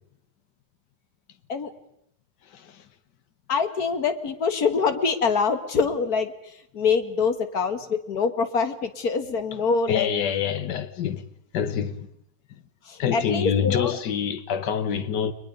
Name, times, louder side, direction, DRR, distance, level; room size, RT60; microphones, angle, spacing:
voice 1, 3.5-6.3 6.7-10.1 12.9-14.0, left 5 dB, 65° left, 1.9 m, -24 dB
voice 2, 9.9-11.2 11.5-12.1 13.0-15.3, left 8 dB, 85° left, 1.7 m, -26 dB
30.0 x 21.5 x 5.3 m
omnidirectional pair, 1.8 m